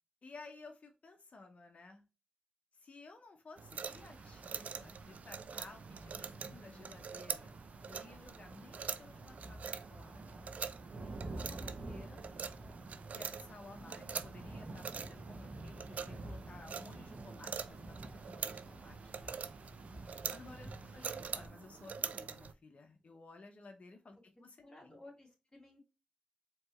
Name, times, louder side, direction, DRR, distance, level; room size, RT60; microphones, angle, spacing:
voice 1, 0.2-2.0 2.7-7.5 7.9-9.6 9.9-10.3 11.3-12.2 13.1-19.5 20.3-25.0, left 3 dB, 60° left, 4 dB, 0.9 m, -55 dB
sound 1, 3.6-22.5, right 6 dB, 80° right, 0.3 m, -45 dB
Rain, 3.8-21.5, right 2 dB, 65° right, 1.0 m, -50 dB
voice 2, 11.0-11.9 12.3-12.4 19.8-20.9 24.6-25.8, left 2 dB, 35° left, -2 dB, 2.1 m, -59 dB
4.4 x 3.1 x 3.0 m, 0.31 s
cardioid pair, 50°, 3 cm